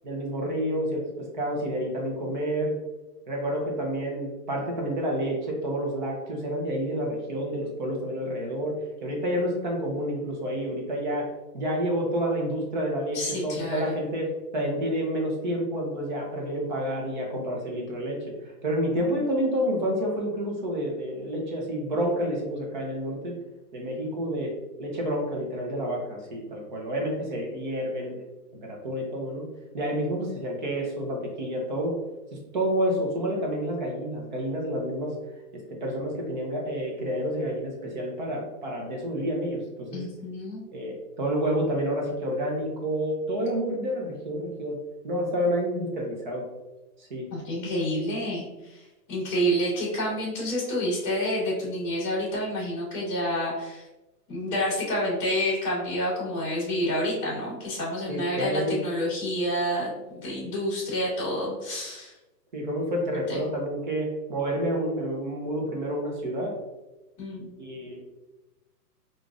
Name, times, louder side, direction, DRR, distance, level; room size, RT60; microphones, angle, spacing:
voice 1, 0.0-2.7 3.3-8.7 9.0-11.3 11.5-23.3 23.7-24.5 24.8-28.3 28.6-29.5 29.7-31.9 32.5-35.1 35.8-40.0 40.7-44.8 45.0-46.5 47.0-47.3 58.1-58.8 62.5-66.5 67.6-68.0, equal, 30° right, 0 dB, 0.6 m, -29 dB
voice 2, 13.1-14.0 39.9-40.6 47.3-53.8 54.3-62.1 63.3-63.4 67.2-67.5, equal, 25° left, -6 dB, 1.3 m, -29 dB
4.8 x 2.5 x 2.4 m, 1.0 s
hypercardioid pair, 165°, 48 cm